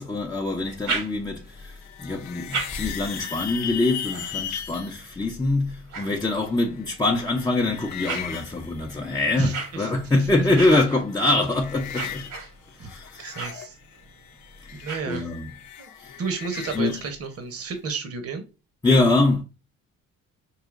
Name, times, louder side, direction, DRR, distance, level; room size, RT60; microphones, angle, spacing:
voice 1, 0.0-12.3 12.8-13.2 14.6-15.5 16.0-16.2 16.7-17.0 18.8-19.4, left 2 dB, 15° left, 0.6 m, -24 dB
sound 1, 0.6-1.6 2.2-6.8 7.4-15.7, right 4 dB, 75° right, 1.4 m, -38 dB
sound 2, 1.5-5.0 6.3-9.7 10.0-10.8 11.1-12.4 12.7-17.1, left 9 dB, 70° left, 0.6 m, -38 dB
voice 2, 9.4-10.3 10.7-10.8 12.8-12.9 13.2-13.8 14.8-15.2 15.8-15.9 16.2-18.4, right 5 dB, 50° right, 1.0 m, -32 dB
4.8 x 2.7 x 2.5 m
cardioid pair, 90°, 30 cm